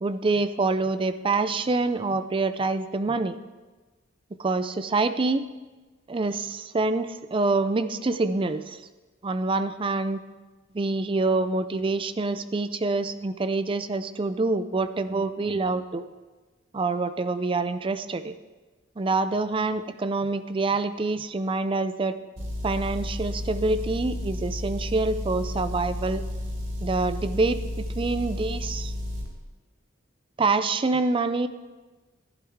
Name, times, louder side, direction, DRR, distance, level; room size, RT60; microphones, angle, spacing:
voice 1, 0.0-3.4 4.4-5.4 6.1-8.8 9.2-10.2 10.7-16.0 16.7-18.3 19.0-22.1 22.6-26.2 26.8-27.6 28.0-28.9 30.4-31.5, right 3 dB, 25° right, 12 dB, 0.4 m, -26 dB
Motor vehicle (road) / Engine, 22.4-29.3, left 1 dB, 80° right, 2.0 m, -32 dB
11.5 x 10.5 x 3.6 m, 1.3 s
head